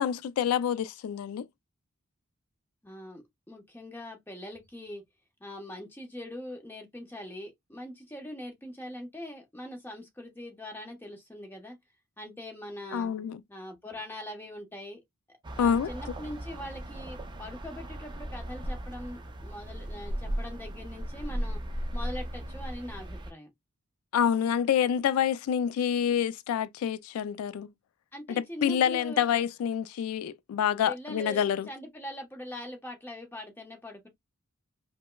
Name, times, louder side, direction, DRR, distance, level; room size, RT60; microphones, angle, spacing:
voice 1, 0.0-1.5 12.9-13.4 15.6-15.9 24.1-27.7 28.3-31.7, left 8 dB, 90° left, 0.3 m, -27 dB
voice 2, 2.8-5.0 5.4-11.8 12.2-13.1 13.5-15.0 15.5-21.6 21.9-23.5 28.1-29.4 30.9-34.1, left 1 dB, 10° left, 1.0 m, -42 dB
sound 1, 15.4-23.3, equal, 20° right, 0.5 m, -37 dB
5.0 x 2.0 x 2.2 m
head